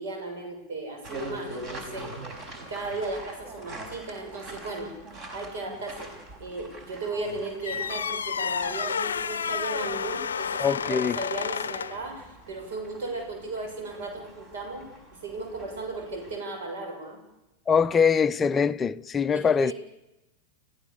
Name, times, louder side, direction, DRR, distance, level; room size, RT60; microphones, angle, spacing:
voice 1, 0.0-2.1 2.5-4.9 5.3-6.1 6.4-14.9 15.2-17.2 19.3-19.7, right 3 dB, 55° right, 6.9 m, -36 dB
sound 1, 1.0-16.4, right 1 dB, 35° right, 5.6 m, -44 dB
sound 2, 7.6-12.1, left 7 dB, 70° left, 0.7 m, -30 dB
voice 2, 10.6-11.2 17.7-19.7, left 6 dB, 20° left, 0.7 m, -23 dB
29.0 x 15.5 x 7.1 m
figure-of-eight pair, 90°, 0 cm